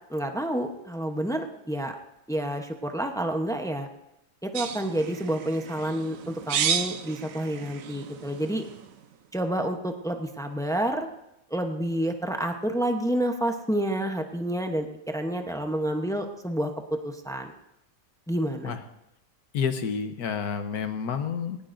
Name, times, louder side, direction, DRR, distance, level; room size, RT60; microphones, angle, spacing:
voice 1, 0.1-2.0 2.3-3.9 4.4-8.7 9.3-11.1 11.5-16.7 17.0-17.5 18.3-18.8, right 1 dB, 5° left, 4 dB, 0.4 m, -29 dB
sound 1, 4.6-9.0, right 7 dB, 60° right, 1.0 m, -32 dB
voice 2, 19.5-21.6, left 6 dB, 65° left, 8 dB, 1.5 m, -29 dB
18.5 x 18.5 x 2.6 m, 0.86 s
omnidirectional pair, 1.8 m